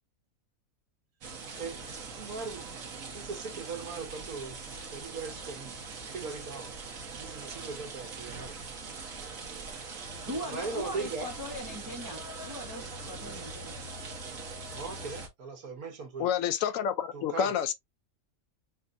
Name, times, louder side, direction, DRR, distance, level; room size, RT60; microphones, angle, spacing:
sound 1, 1.2-15.3, right 4 dB, 65° right, 1.4 m, -42 dB
voice 1, 2.1-2.6 3.1-4.6 4.9-5.8 6.1-6.7 7.1-8.7 10.5-11.3 14.7-16.3 17.1-17.5, right 4 dB, 85° right, 1.6 m, -39 dB
voice 2, 10.3-13.7, equal, 15° right, 1.0 m, -40 dB
voice 3, 16.2-17.7, left 8 dB, 70° left, 0.9 m, -28 dB
5.1 x 2.6 x 2.5 m
omnidirectional pair, 1.5 m